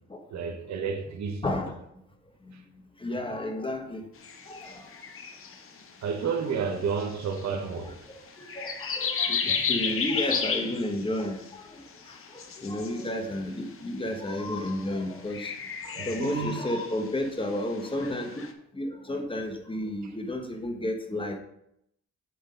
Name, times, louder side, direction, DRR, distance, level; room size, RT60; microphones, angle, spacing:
voice 1, 0.3-1.5 6.0-8.0 16.0-16.5, right 6 dB, 70° right, 1.1 m, -31 dB
voice 2, 1.4-1.8 2.5-2.6 3.0-4.0 4.5-4.9 7.8-7.9 8.4-11.8 12.1-15.5 15.8-18.5 18.7-21.4, left 1 dB, 15° left, 1.1 m, -32 dB
sound 1, 4.2-5.9 7.0-7.5 8.3-11.5 11.8-13.5 14.3-14.8 15.2-18.5, left 6 dB, 45° left, 1.0 m, -33 dB
8.7 x 3.5 x 5.5 m
cardioid pair, 100°, 29 cm